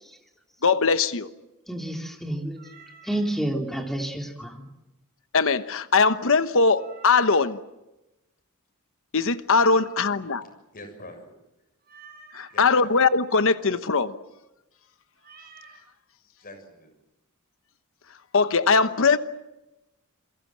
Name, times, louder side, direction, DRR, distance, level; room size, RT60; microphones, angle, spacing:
voice 1, 0.6-1.3 5.3-7.6 9.1-10.4 12.3-14.1 18.3-19.2, left 4 dB, 60° left, 1.1 m, -21 dB
voice 2, 1.7-2.6 3.0-4.7, right 1 dB, ahead, 3.2 m, -29 dB
Meow, 2.6-3.3 6.8-7.5 9.6-10.4 11.8-12.6 15.2-15.8, right 5 dB, 45° right, 6.0 m, -49 dB
voice 3, 10.7-11.3 12.5-12.9 16.4-16.9, left 1 dB, 40° left, 7.2 m, -44 dB
28.5 x 22.5 x 7.5 m
head